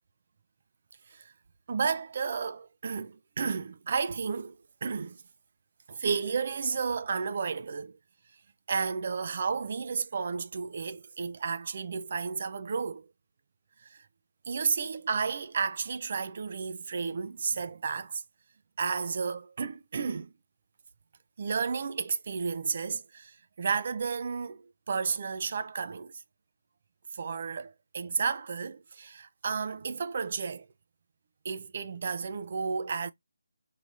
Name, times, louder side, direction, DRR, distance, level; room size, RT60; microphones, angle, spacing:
voice 1, 1.7-4.5 4.8-5.2 5.9-8.0 8.7-13.1 13.8-14.1 14.5-18.2 18.8-20.3 21.4-26.1 27.1-30.7 31.4-33.1, right 5 dB, 45° right, 0.4 m, -32 dB
3.2 x 2.7 x 2.4 m
figure-of-eight pair, 160°, 0 cm